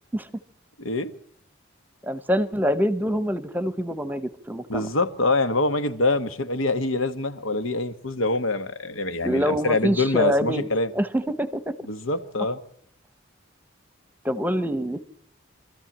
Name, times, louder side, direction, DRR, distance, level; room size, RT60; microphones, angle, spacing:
voice 1, 0.8-1.1 4.7-10.9 11.9-12.6, left 2 dB, 80° left, 1.4 m, -25 dB
voice 2, 2.0-4.9 9.2-10.6 10.9-11.7 14.2-15.0, equal, 10° right, 0.9 m, -25 dB
25.0 x 14.0 x 8.8 m
head